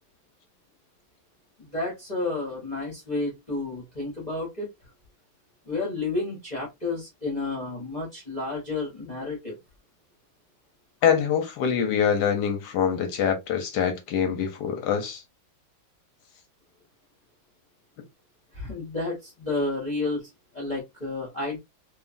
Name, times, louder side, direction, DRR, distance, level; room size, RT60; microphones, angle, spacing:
voice 1, 1.6-4.7 5.7-9.6 18.5-21.6, left 2 dB, 40° left, 0.6 m, -31 dB
voice 2, 11.0-15.2, left 7 dB, 70° left, 1.0 m, -24 dB
3.0 x 2.4 x 2.4 m
omnidirectional pair, 2.2 m